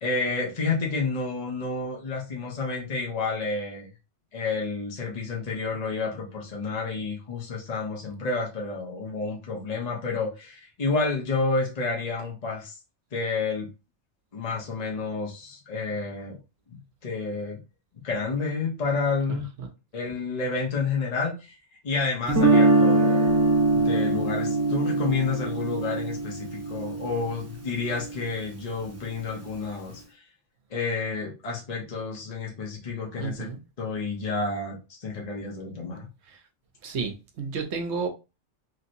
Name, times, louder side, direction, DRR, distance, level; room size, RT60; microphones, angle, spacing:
voice 1, 0.0-3.9 4.3-12.8 13.1-13.7 14.3-16.4 16.7-17.6 18.0-19.5 19.9-21.6 21.8-23.4 23.7-30.2 30.7-33.4 33.8-36.1, left 4 dB, 35° left, 0.9 m, -30 dB
Guitar, 22.3-28.3, right 2 dB, 25° right, 0.3 m, -23 dB
voice 2, 33.2-33.6 36.3-36.4 36.8-38.1, right 5 dB, 65° right, 0.9 m, -31 dB
3.1 x 2.7 x 2.6 m
omnidirectional pair, 1.3 m